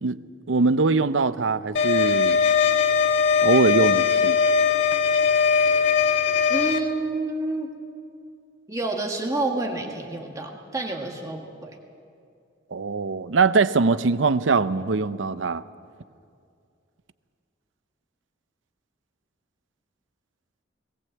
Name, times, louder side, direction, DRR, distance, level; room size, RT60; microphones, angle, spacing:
voice 1, 0.5-2.4 3.4-4.4 12.7-15.6, right 4 dB, 80° right, 0.6 m, -22 dB
sound 1, 1.7-6.8, left 6 dB, 70° left, 1.8 m, -20 dB
voice 2, 6.5-7.7 8.7-11.8, right 2 dB, 20° right, 1.8 m, -29 dB
19.5 x 18.5 x 7.9 m
head